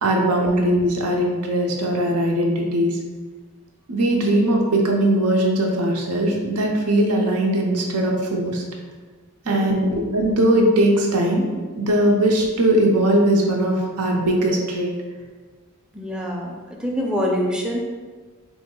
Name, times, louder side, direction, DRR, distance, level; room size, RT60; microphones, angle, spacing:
voice 1, 0.0-3.0 3.9-8.6 9.5-11.5 11.8-14.9, right 1 dB, 85° right, 0 dB, 0.7 m, -20 dB
voice 2, 9.4-10.0 15.9-17.8, equal, 5° right, -2 dB, 0.4 m, -26 dB
4.1 x 2.1 x 3.7 m, 1.4 s
head